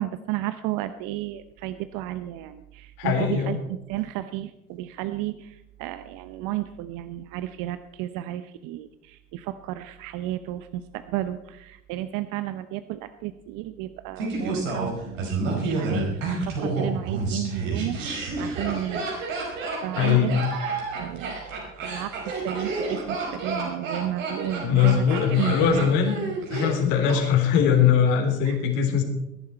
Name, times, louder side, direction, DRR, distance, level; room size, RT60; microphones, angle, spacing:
voice 1, 0.0-19.1 19.7-21.4 21.8-22.2 22.4-25.9 28.4-28.6, right 13 dB, 55° right, 12 dB, 0.8 m, -33 dB
voice 2, 3.0-3.6 19.9-20.4 24.6-26.1 26.5-29.0, left 8 dB, 65° left, 2 dB, 3.7 m, -21 dB
Laughter, 14.2-27.2 27.4-27.5, right 3 dB, 80° right, 5.0 m, -30 dB
20.5 x 11.0 x 4.5 m, 0.88 s
hypercardioid pair, 75°, 38 cm